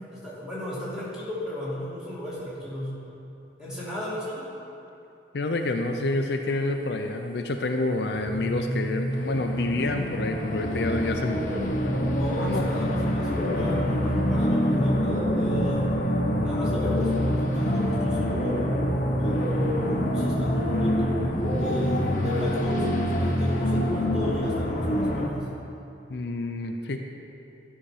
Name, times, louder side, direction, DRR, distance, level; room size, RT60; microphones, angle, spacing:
voice 1, 0.1-3.0 3.6-4.5 12.2-15.8 16.4-18.6 19.2-25.5, left 1 dB, 5° right, -9 dB, 2.5 m, -34 dB
voice 2, 5.3-12.6 26.1-27.0, left 2 dB, 65° left, 4 dB, 0.5 m, -28 dB
sound 1, 8.0-10.2 11.1-24.1, right 1 dB, 35° right, 2.3 m, -30 dB
sound 2, 9.1-25.3, left 1 dB, 45° left, 0.9 m, -27 dB
12.5 x 5.7 x 4.9 m, 2.8 s
head